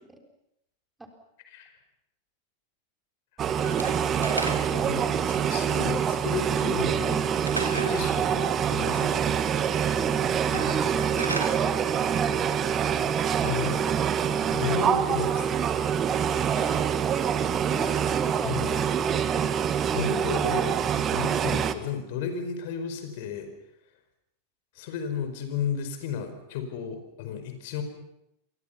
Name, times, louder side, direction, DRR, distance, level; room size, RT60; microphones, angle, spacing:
sound 1, 3.4-21.7, right 8 dB, 25° right, 1.6 m, -25 dB
Slam / Wood, 3.6-4.9 7.4-8.0 10.4-11.6, right 1 dB, 85° right, 3.0 m, -33 dB
voice 1, 4.7-7.2 7.9-9.3 13.4-13.9 14.4-15.5 16.5-16.7 17.9-18.0 18.4-18.8 19.9-23.5 24.7-27.8, left 7 dB, 50° left, 8 dB, 4.9 m, -33 dB
voice 2, 9.6-12.4 16.4-16.9 17.3-19.5, right 2 dB, 10° right, 4 dB, 4.1 m, -39 dB
28.5 x 25.0 x 5.8 m, 0.81 s
figure-of-eight pair, 90°, 0 cm